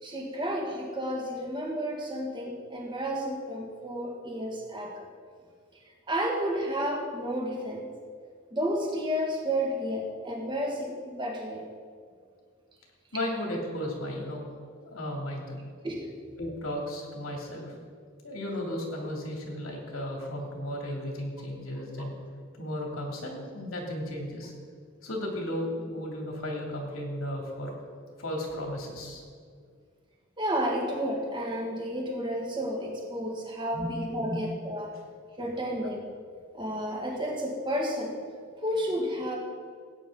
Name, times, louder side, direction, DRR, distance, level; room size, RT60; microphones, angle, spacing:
voice 1, 0.0-5.1 6.1-7.9 8.5-11.6 15.8-16.1 30.4-34.9 35.4-36.0 36.5-38.1 38.6-39.4, equal, 20° right, -1 dB, 1.8 m, -31 dB
voice 2, 13.1-14.4 14.8-15.6 16.4-17.7 18.2-22.1 22.6-24.5 25.0-27.8 28.2-29.2 33.7-33.9 34.2-34.4, left 1 dB, 90° left, -1 dB, 2.7 m, -34 dB
17.0 x 9.1 x 3.8 m, 2.1 s
head